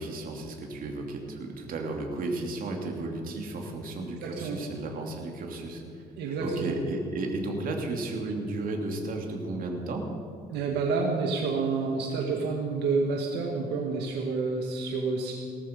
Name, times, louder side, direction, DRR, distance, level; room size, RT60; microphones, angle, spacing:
voice 1, 0.0-5.8 6.2-10.1, right 2 dB, 55° right, 2 dB, 2.8 m, -33 dB
voice 2, 4.2-4.6 6.2-6.7 10.5-15.3, right 4 dB, 85° right, 1 dB, 1.8 m, -29 dB
18.0 x 13.5 x 5.3 m, 2.5 s
cardioid pair, 110°, 17 cm